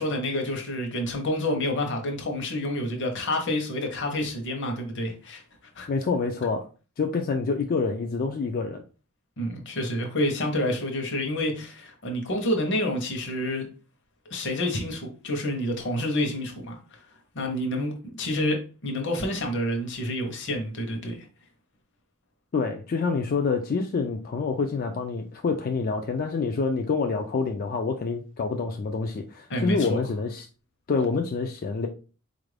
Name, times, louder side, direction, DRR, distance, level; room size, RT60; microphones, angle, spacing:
voice 1, 0.0-5.4 5.8-5.9 9.4-13.7 14.3-17.0 17.3-21.3 29.5-30.0, left 1 dB, 60° left, 0.9 m, -28 dB
voice 2, 5.9-6.7 7.0-8.8 22.5-30.5 30.9-31.9, left 4 dB, 40° left, 0.3 m, -27 dB
4.2 x 2.5 x 3.3 m
head